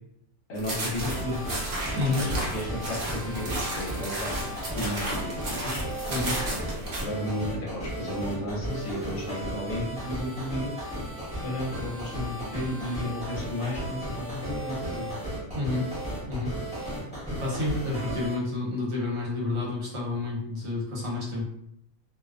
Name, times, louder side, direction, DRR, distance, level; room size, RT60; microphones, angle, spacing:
voice 1, 0.5-1.4 2.1-4.3 4.8-5.8 7.0-10.8 11.4-15.1, left 1 dB, 70° left, -2 dB, 1.0 m, -33 dB
sound 1, 0.6-7.0, right 1 dB, 50° right, 0.7 m, -33 dB
sound 2, 1.0-18.3, right 1 dB, 5° right, 0.7 m, -35 dB
voice 2, 1.9-2.3 6.1-6.4 15.5-15.9 16.3-16.5 16.8-17.0 17.4-21.4, left 3 dB, 70° right, -4 dB, 1.2 m, -29 dB
2.5 x 2.1 x 2.4 m, 0.77 s
omnidirectional pair, 1.5 m